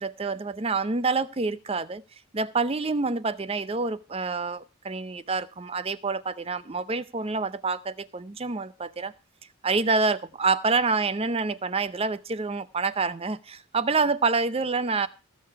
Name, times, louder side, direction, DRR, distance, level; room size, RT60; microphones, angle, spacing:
voice 1, 0.0-2.0 2.3-9.1 9.6-15.1, right 4 dB, 25° right, 0.5 m, -27 dB
16.5 x 6.7 x 5.8 m
head